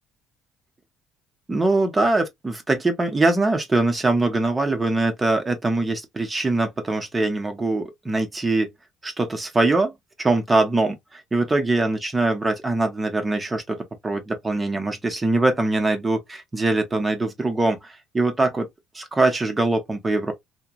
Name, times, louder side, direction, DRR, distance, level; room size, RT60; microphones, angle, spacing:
voice 1, 1.5-8.7 9.0-9.9 10.2-18.7 18.9-20.3, right 2 dB, 15° right, 0.7 m, -22 dB
2.9 x 2.2 x 2.3 m
cardioid pair, 120°, 0 cm